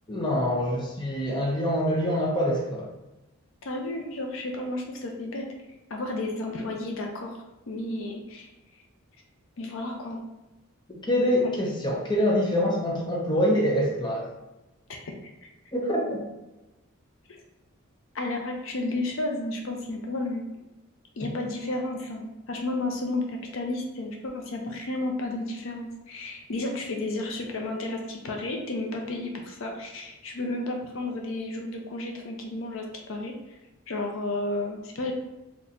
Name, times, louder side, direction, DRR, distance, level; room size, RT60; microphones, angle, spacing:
voice 1, 0.1-2.9 11.1-14.3 15.7-16.2, equal, 20° left, -2 dB, 0.7 m, -25 dB
voice 2, 3.6-5.5 5.9-7.4 7.7-8.5 9.6-10.2 11.4-11.5 14.9-15.5 18.1-20.5 21.2-33.6 33.9-35.1, left 2 dB, 65° left, 2 dB, 0.5 m, -32 dB
4.2 x 2.9 x 2.5 m, 1.0 s
head